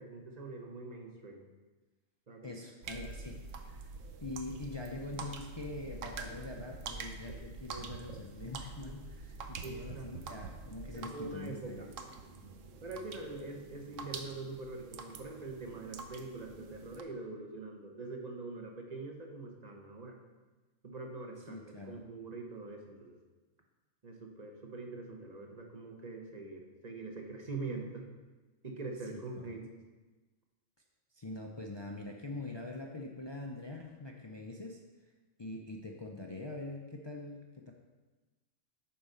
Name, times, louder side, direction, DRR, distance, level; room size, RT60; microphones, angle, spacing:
voice 1, 0.0-1.5 2.3-2.6 9.6-10.1 10.9-11.9 12.8-20.2 20.8-23.2 24.0-28.1 28.6-29.7, right 3 dB, 35° right, 2 dB, 1.0 m, -44 dB
voice 2, 2.4-3.3 3.6-3.8 4.2-11.9 21.5-22.0 29.1-29.6 31.1-34.8 35.4-37.7, left 2 dB, 40° left, 1 dB, 0.4 m, -44 dB
sound 1, 2.8-17.0, right 4 dB, 70° right, 1.0 m, -46 dB
8.7 x 4.7 x 5.5 m, 1.2 s
omnidirectional pair, 1.4 m